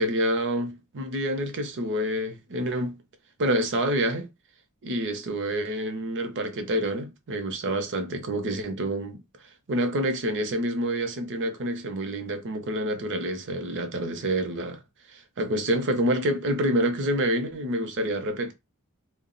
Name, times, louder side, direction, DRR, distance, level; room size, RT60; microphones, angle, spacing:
voice 1, 0.0-3.0 3.4-4.3 4.8-9.2 9.7-14.8 15.1-18.5, right 1 dB, 55° right, 0.6 m, -27 dB
2.3 x 2.0 x 3.7 m
head